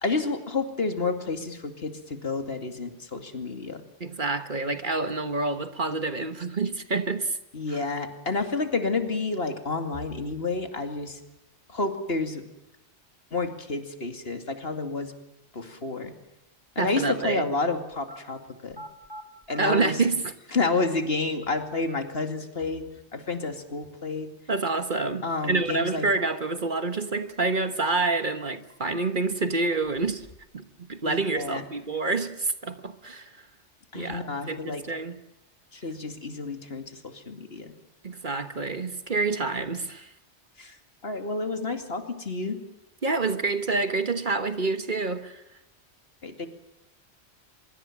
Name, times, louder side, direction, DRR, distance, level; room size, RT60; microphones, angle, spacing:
voice 1, 0.0-3.8 7.5-11.2 11.7-12.4 13.3-15.1 15.5-16.1 16.8-18.8 19.5-19.9 20.5-24.3 25.2-26.1 31.1-31.6 33.9-34.8 35.7-37.7 40.6-40.8 41.0-42.6 46.2-46.5, left 3 dB, 55° left, 2.7 m, -30 dB
voice 2, 4.0-7.4 7.7-7.8 16.8-17.5 19.6-20.3 24.5-30.3 30.5-33.4 33.9-35.2 38.0-40.1 43.0-45.4, right 3 dB, 45° right, 1.4 m, -28 dB
sound 1, 17.9-18.2 18.7-19.6 20.6-20.7 21.4-22.4 26.4-27.4 27.8-27.9 28.5-29.4 29.8-30.5 30.8-31.4, equal, 20° left, 3.7 m, -48 dB
24.5 x 23.0 x 7.4 m
omnidirectional pair, 1.2 m